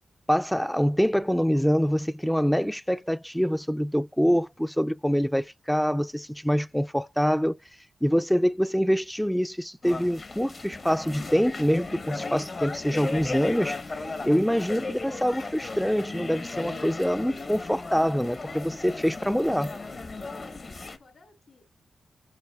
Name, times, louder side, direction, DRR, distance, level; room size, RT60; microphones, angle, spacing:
voice 1, 0.3-7.5 8.0-13.8 14.2-19.7, equal, ahead, 0.3 m, -25 dB
sound 1, 9.8-21.0, left 3 dB, 50° left, 1.0 m, -36 dB
voice 2, 20.8-21.7, left 3 dB, 70° left, 2.6 m, -59 dB
7.9 x 5.3 x 2.3 m
cardioid pair, 55°, 0 cm